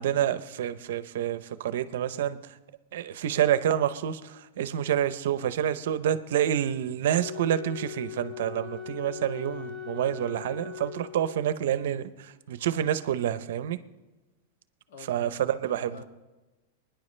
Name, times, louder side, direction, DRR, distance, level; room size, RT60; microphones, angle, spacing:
voice 1, 0.0-2.4 2.9-13.8 15.1-16.0, right 10 dB, 65° right, 14 dB, 0.7 m, -28 dB
Wind instrument woodwind instrument, 7.1-11.6, left 10 dB, 10° left, 0.8 m, -40 dB
voice 2, 9.3-9.6 14.9-16.0, left 6 dB, 70° left, 5 dB, 1.9 m, -48 dB
25.0 x 10.0 x 3.3 m, 1.1 s
supercardioid pair, 165°, 0 cm